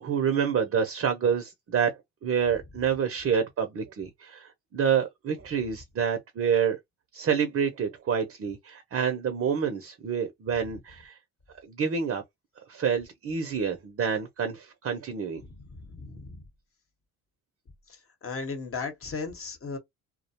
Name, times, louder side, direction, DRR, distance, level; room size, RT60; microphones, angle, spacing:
voice 1, 0.0-1.9 2.2-6.8 7.1-11.2 11.6-12.2 12.7-15.4, right 7 dB, 40° right, 0.6 m, -28 dB
voice 2, 15.4-16.4 17.9-18.0 18.2-19.8, left 4 dB, 40° left, 1.0 m, -36 dB
2.3 x 2.1 x 2.8 m
supercardioid pair, 70°, 35 cm